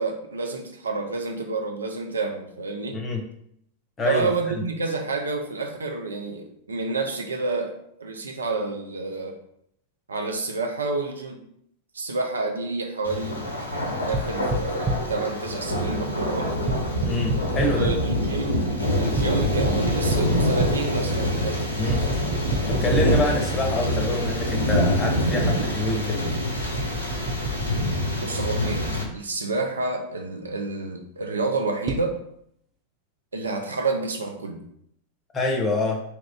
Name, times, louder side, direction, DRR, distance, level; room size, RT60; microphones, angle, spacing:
voice 1, 0.0-3.0 4.0-7.7 8.0-9.4 10.1-11.4 11.9-13.5 14.0-16.5 17.6-18.6 18.9-21.6 28.2-28.9 29.1-32.2 33.3-34.6, right 3 dB, 75° right, 3 dB, 0.4 m, -29 dB
voice 2, 4.0-4.3 17.0-17.9 21.8-22.1 22.7-26.2 35.3-36.0, left 2 dB, 25° left, 1 dB, 0.8 m, -26 dB
Thunder, 13.0-29.0, left 1 dB, 80° left, 0.6 m, -25 dB
sound 1, 14.1-15.2 16.7-18.4 19.2-20.9 21.9-23.5 24.1-24.2 26.6-27.9 31.9-32.1, right 1 dB, 20° right, 0.5 m, -29 dB
2.9 x 2.4 x 3.4 m, 0.71 s
figure-of-eight pair, 90°, 0 cm